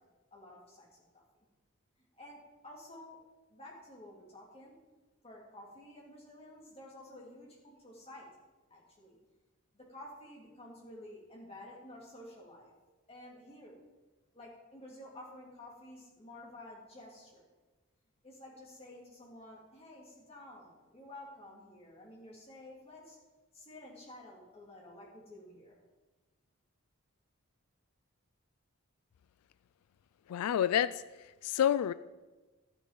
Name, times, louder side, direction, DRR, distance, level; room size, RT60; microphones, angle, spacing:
voice 1, 0.3-1.2 2.2-3.2 3.5-4.7 5.2-8.3 8.7-9.2 9.7-12.7 13.1-13.7 14.3-17.5 18.2-23.2 23.5-25.8, left 1 dB, 25° left, -3 dB, 2.9 m, -51 dB
voice 2, 30.3-31.0 31.4-31.9, left 10 dB, 90° left, 17 dB, 0.3 m, -28 dB
12.0 x 8.9 x 5.2 m, 1.2 s
head